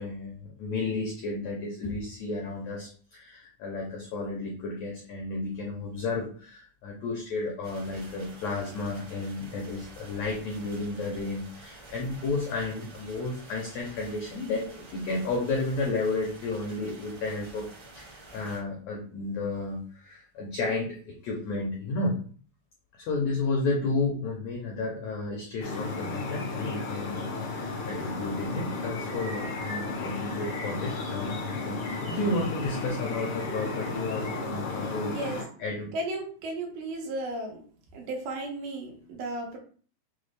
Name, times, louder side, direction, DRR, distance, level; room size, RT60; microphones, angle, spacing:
voice 1, 0.0-22.2 22.9-35.9, left 3 dB, 90° left, -1 dB, 1.5 m, -32 dB
sound 1, 7.6-18.6, right 2 dB, 55° right, 1.1 m, -49 dB
sound 2, 25.6-35.4, left 3 dB, 75° left, 1.2 m, -33 dB
voice 2, 35.9-37.6 37.9-39.6, right 2 dB, 85° right, 0 dB, 2.8 m, -34 dB
6.0 x 2.1 x 3.3 m, 0.43 s
omnidirectional pair, 4.2 m